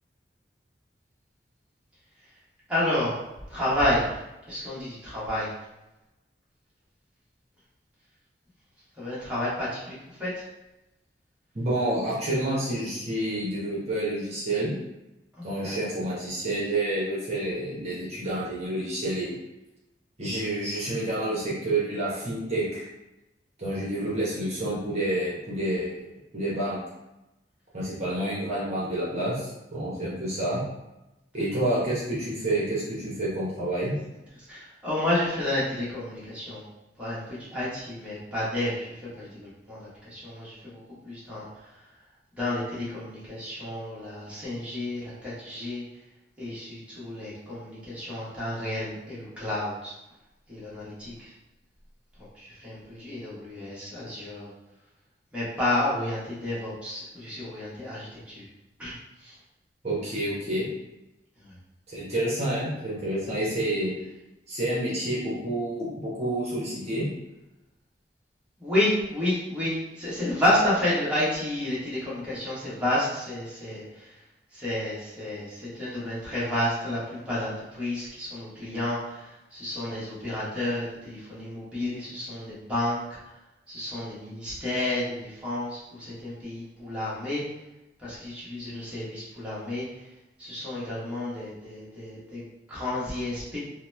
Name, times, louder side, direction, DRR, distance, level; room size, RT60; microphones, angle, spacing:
voice 1, 2.7-3.1 3.5-4.2 4.5-5.5 9.0-10.4 15.4-15.8 34.5-36.6 37.0-41.5 42.3-45.8 46.4-49.9 50.5-51.3 52.2-54.5 55.3-58.5 58.8-58.9 59.2-59.4 61.4-61.5 68.6-74.1 74.5-83.0 83.7-87.4 88.0-89.9 90.4-92.4 92.7-93.6, left 1 dB, 5° right, -9 dB, 1.0 m, -30 dB
voice 2, 11.5-14.7 15.4-19.3 20.2-22.9 23.6-26.8 27.7-30.6 31.3-33.9 59.8-60.7 61.9-63.9 64.5-67.1, right 1 dB, 40° right, -7 dB, 0.8 m, -29 dB
2.9 x 2.0 x 3.1 m, 0.95 s
head